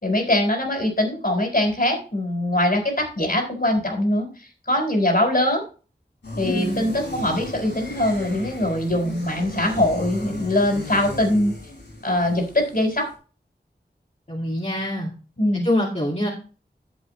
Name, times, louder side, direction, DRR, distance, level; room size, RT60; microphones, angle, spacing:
voice 1, 0.0-5.6 6.4-11.5 12.0-13.1 15.4-15.7, left 1 dB, 55° left, 2 dB, 4.0 m, -22 dB
sound 1, 6.2-13.1, left 1 dB, 75° left, 5.3 m, -35 dB
voice 2, 6.5-6.8 14.3-15.1 15.5-16.3, left 1 dB, 35° left, -3 dB, 2.2 m, -25 dB
11.0 x 7.9 x 3.1 m, 0.36 s
wide cardioid pair, 55°, 18 cm